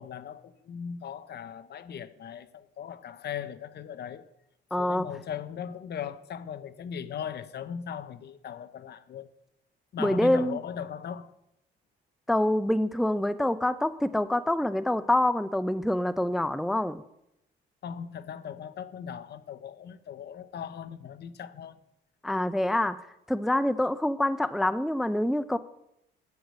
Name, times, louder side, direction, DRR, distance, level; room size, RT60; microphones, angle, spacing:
voice 1, 0.0-4.3 4.8-9.3 9.9-11.3 17.8-21.8, left 8 dB, 55° left, 0.7 m, -38 dB
voice 2, 4.7-5.1 10.0-10.6 12.3-17.0 22.2-23.0 23.3-25.6, left 1 dB, ahead, 0.4 m, -26 dB
10.5 x 4.7 x 8.1 m
cardioid pair, 90°, 20 cm